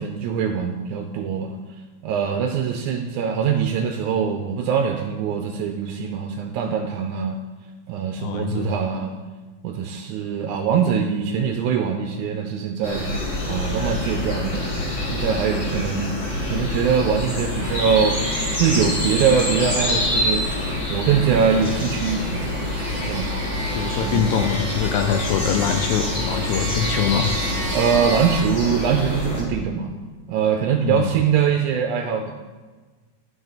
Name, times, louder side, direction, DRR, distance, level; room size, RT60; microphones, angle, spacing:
voice 1, 0.0-1.6 2.0-7.4 7.9-9.2 9.6-13.1 13.4-14.7 15.1-18.2 18.5-23.3 23.9-24.3 27.7-29.9 30.3-32.3, right 7 dB, 80° right, 4 dB, 1.9 m, -23 dB
voice 2, 8.2-8.7 23.7-27.3 30.8-31.1, left 8 dB, 80° left, 6 dB, 1.7 m, -23 dB
sound 1, 12.8-29.4, left 2 dB, 45° left, 2.4 m, -26 dB
sound 2, 17.6-28.4, right 3 dB, 40° right, 1.5 m, -34 dB
11.5 x 5.0 x 4.0 m, 1.3 s
omnidirectional pair, 3.6 m